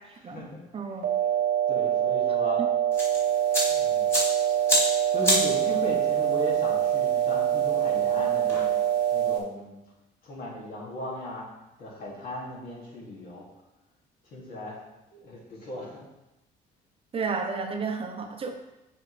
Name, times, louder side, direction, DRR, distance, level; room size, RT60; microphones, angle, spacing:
voice 1, 0.2-0.6 1.7-2.6 3.7-4.1 5.1-8.7 9.1-9.7 10.2-11.5 11.8-13.5 14.2-14.8 15.1-16.0, left 1 dB, 60° left, -4 dB, 2.4 m, -37 dB
voice 2, 0.7-1.1 17.1-18.5, right 5 dB, 35° right, 5 dB, 0.7 m, -31 dB
sound 1, 1.0-9.4, right 10 dB, 60° right, 0.8 m, -25 dB
sound 2, 2.9-9.4, equal, 15° left, 2.5 m, -31 dB
7.0 x 5.4 x 3.3 m, 0.97 s
cardioid pair, 110°, 17 cm